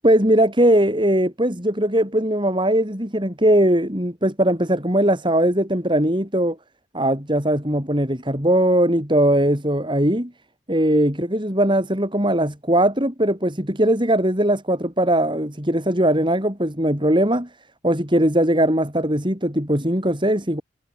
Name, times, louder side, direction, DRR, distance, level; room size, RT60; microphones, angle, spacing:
voice 1, 0.0-6.6 6.9-10.3 10.7-17.5 17.8-20.6, right 1 dB, 25° right, 7.4 m, -20 dB
head